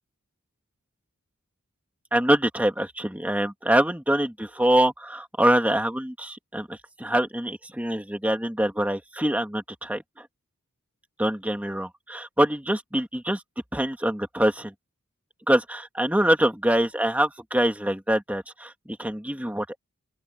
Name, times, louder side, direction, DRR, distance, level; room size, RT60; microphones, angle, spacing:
voice 1, 2.1-10.3 11.2-13.4 13.7-14.7 15.5-19.8, right 1 dB, 5° right, 2.2 m, -24 dB
open air
head